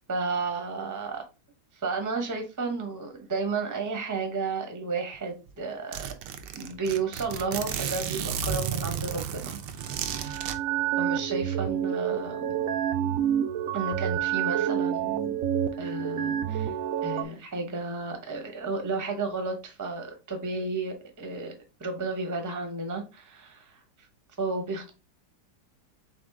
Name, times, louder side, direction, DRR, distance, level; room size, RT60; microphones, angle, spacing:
voice 1, 0.1-1.2 1.7-6.1 6.5-9.6 10.2-10.5 11.0-12.6 13.7-15.4 15.8-16.7 17.0-21.5 21.8-23.8 24.4-24.9, right 3 dB, 15° right, 0.6 m, -32 dB
Zipper (clothing), 5.1-5.2 5.5-5.6 5.9-10.6, right 8 dB, 85° right, 1.2 m, -33 dB
sound 1, 9.8-17.2, right 10 dB, 70° right, 0.8 m, -28 dB
3.9 x 3.6 x 3.5 m
omnidirectional pair, 1.8 m